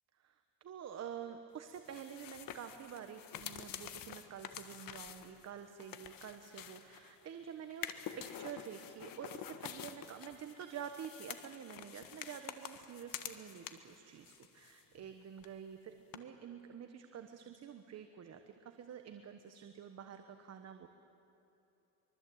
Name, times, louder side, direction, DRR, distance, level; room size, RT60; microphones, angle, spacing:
voice 1, 0.1-20.9, right 8 dB, 35° right, 7 dB, 1.2 m, -48 dB
sound 1, 1.7-7.2 7.7-14.0 14.2-15.1 15.4-15.5 16.1-16.2, left 10 dB, 50° left, 1.5 m, -48 dB
24.5 x 23.0 x 8.7 m, 3.0 s
cardioid pair, 150°, 42 cm